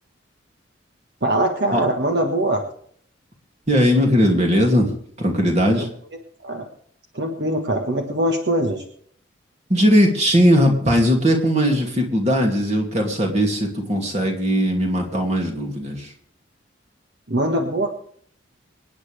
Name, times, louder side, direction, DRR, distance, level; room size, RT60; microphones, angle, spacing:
voice 1, 1.2-2.6 6.4-6.6 7.1-8.8 17.3-17.9, right 1 dB, 55° right, 2 dB, 1.4 m, -22 dB
voice 2, 3.7-4.9 5.2-5.9 9.7-16.1, equal, 35° right, 2 dB, 2.5 m, -19 dB
26.0 x 9.6 x 3.4 m, 0.62 s
head